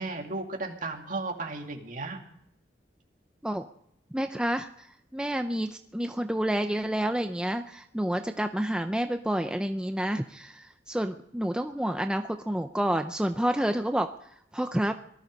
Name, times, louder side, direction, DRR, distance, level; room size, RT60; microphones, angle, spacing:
voice 1, 0.0-2.2, right 3 dB, 50° right, 3 dB, 2.3 m, -34 dB
voice 2, 4.1-4.9 5.1-14.1 14.5-14.9, right 1 dB, 5° right, 7 dB, 0.5 m, -29 dB
19.0 x 13.0 x 5.2 m, 0.74 s
head